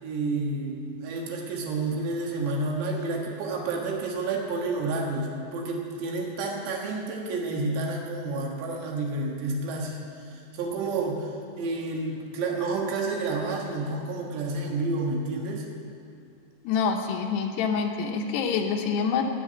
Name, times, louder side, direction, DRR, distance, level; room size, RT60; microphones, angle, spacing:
voice 1, 0.0-10.0 10.3-15.7, right 3 dB, 85° right, 0 dB, 3.8 m, -30 dB
voice 2, 16.6-19.2, left 6 dB, 80° left, 4 dB, 3.0 m, -26 dB
17.5 x 5.9 x 8.7 m, 2.4 s
omnidirectional pair, 4.9 m